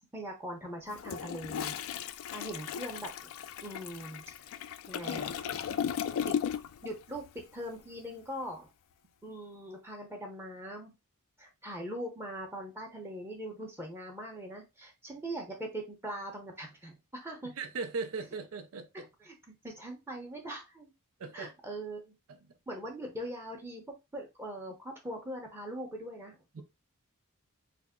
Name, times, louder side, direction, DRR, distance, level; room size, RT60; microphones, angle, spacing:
voice 1, 0.1-1.8 2.3-3.1 3.6-4.2 4.9-5.3 6.3-6.4 6.8-7.2 7.5-8.7 9.2-11.0 11.4-17.5 19.2-20.9 21.3-22.1 22.7-23.8 24.1-26.6, right 1 dB, 10° right, 0.8 m, -41 dB
Toilet flush, 0.9-6.9 7.2-7.4, left 8 dB, 65° left, 0.3 m, -36 dB
voice 2, 17.4-19.1 21.2-21.5 22.3-22.6 26.5-26.6, right 4 dB, 65° right, 0.5 m, -39 dB
3.3 x 2.0 x 3.6 m
head